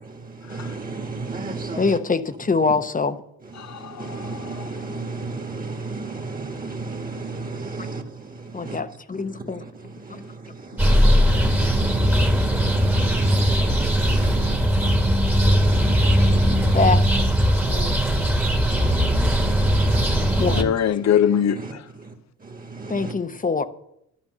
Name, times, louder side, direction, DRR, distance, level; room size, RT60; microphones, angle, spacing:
voice 1, 0.5-1.8 4.0-8.0 8.6-8.8 10.8-14.9 15.4-16.8 17.9-18.0 18.7-20.5 22.9-23.1, right 3 dB, 25° right, 1.7 m, -32 dB
voice 2, 1.8-3.2 8.5-9.6 10.1-10.2 14.8-14.9 16.7-17.0 17.7-18.3 18.8-18.9 20.4-20.8 22.9-23.6, left 4 dB, 25° left, 0.8 m, -24 dB
voice 3, 3.6-4.7 20.6-21.8, left 9 dB, 60° left, 0.7 m, -23 dB
sound 1, 10.8-20.6, equal, 5° right, 1.5 m, -19 dB
12.0 x 5.3 x 7.8 m
supercardioid pair, 60°, 32 cm